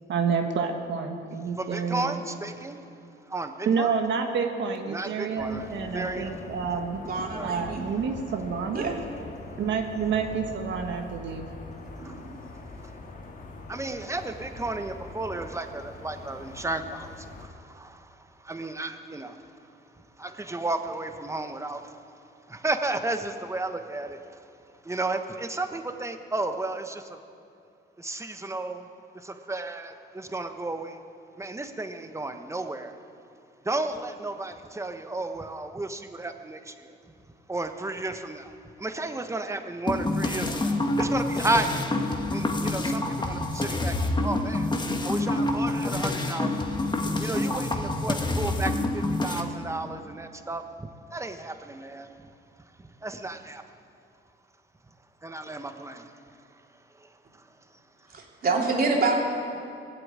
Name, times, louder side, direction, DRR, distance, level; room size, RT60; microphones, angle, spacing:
voice 1, 0.1-2.2 3.6-7.0 7.4-9.0 9.6-11.5, right 6 dB, 65° right, 4 dB, 1.3 m, -28 dB
voice 2, 1.6-2.8 3.3-3.9 4.9-6.4 7.3-7.6 12.0-12.2 13.7-19.7 20.2-22.1 22.5-24.5 24.8-27.2 28.0-28.9 29.1-31.0 31.4-33.0 33.6-37.0 37.5-41.9 42.3-44.0 44.2-44.7 45.0-46.6 47.0-52.3 52.8-53.6 55.2-56.5 56.7-57.5, right 2 dB, 15° right, 7 dB, 1.1 m, -33 dB
sound 1, 5.4-17.5, left 3 dB, 45° left, 1.9 m, -42 dB
voice 3, 7.1-7.8 8.7-8.9 12.0-12.3 58.1-59.1, right 3 dB, 50° right, -1 dB, 3.1 m, -27 dB
sound 2, 39.9-49.4, left 2 dB, 20° left, 1.4 m, -27 dB
18.0 x 7.8 x 8.7 m, 2.5 s
cardioid pair, 90°, 20 cm